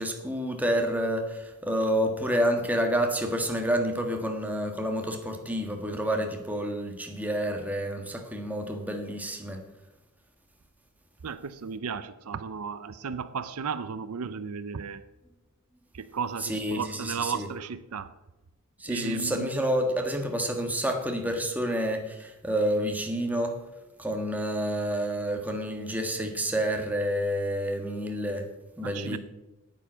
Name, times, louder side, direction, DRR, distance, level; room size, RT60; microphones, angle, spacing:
voice 1, 0.0-9.6 16.5-17.5 18.8-23.6 24.0-28.5 28.8-29.2, equal, 5° right, 3 dB, 1.4 m, -29 dB
voice 2, 11.2-15.0 15.9-18.1 18.9-19.5 28.8-29.2, right 6 dB, 80° right, 13 dB, 0.6 m, -34 dB
9.1 x 9.0 x 6.2 m, 1.0 s
head